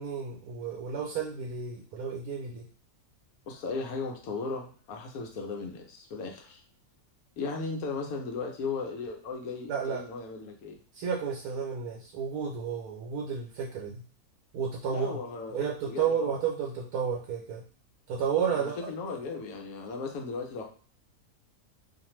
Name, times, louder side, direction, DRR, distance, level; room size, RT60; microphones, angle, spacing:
voice 1, 0.0-2.7 9.7-10.0 10.9-14.0 14.5-15.2 15.5-17.6 18.1-18.7, right 7 dB, 85° right, -2 dB, 1.1 m, -32 dB
voice 2, 3.5-6.6 7.4-10.8 14.9-16.4 18.5-20.6, left 4 dB, 75° left, 3 dB, 1.1 m, -36 dB
2.5 x 2.5 x 3.0 m, 0.42 s
omnidirectional pair, 1.6 m